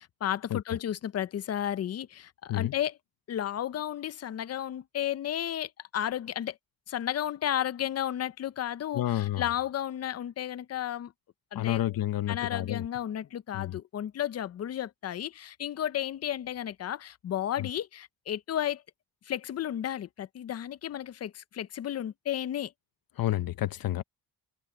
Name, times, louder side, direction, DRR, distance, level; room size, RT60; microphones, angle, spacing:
voice 1, 0.0-3.0 3.3-6.6 6.9-11.1 11.5-11.8 12.3-18.8 19.2-22.7, left 11 dB, 40° left, 0.5 m, -33 dB
voice 2, 8.9-9.4 11.5-12.8 13.5-13.8 17.6-17.7 23.2-24.0, left 13 dB, 65° left, 0.9 m, -30 dB
wide cardioid pair, 175°, 37 cm